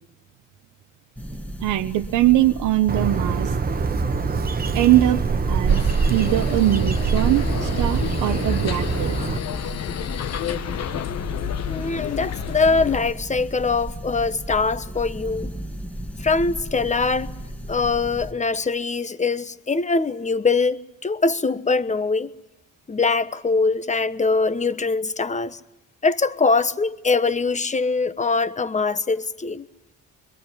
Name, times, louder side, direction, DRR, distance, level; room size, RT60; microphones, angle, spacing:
sound 1, 1.2-18.3, equal, 5° left, 2.0 m, -35 dB
voice 1, 1.6-3.6 4.7-5.2 5.5-9.2, right 14 dB, 90° right, 1.0 m, -21 dB
Bird, 2.9-9.4, right 5 dB, 30° right, 1.1 m, -23 dB
sound 2, 5.7-13.0, left 9 dB, 60° left, 1.1 m, -31 dB
voice 2, 11.7-15.5 16.2-17.3 17.7-22.3 22.9-25.6 26.0-29.7, left 4 dB, 25° left, 1.2 m, -22 dB
26.0 x 22.0 x 9.9 m
cardioid pair, 90°, 30 cm